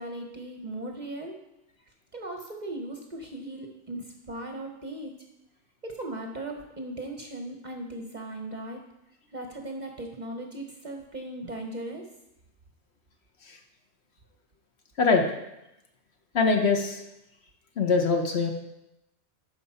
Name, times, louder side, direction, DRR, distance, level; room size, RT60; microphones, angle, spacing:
voice 1, 0.0-1.4 2.1-5.2 5.8-8.8 9.3-12.1, right 1 dB, 40° right, 2 dB, 0.8 m, -38 dB
voice 2, 16.3-17.0 17.8-18.5, left 4 dB, 55° left, 3 dB, 1.1 m, -23 dB
11.5 x 4.8 x 4.3 m, 0.87 s
omnidirectional pair, 1.4 m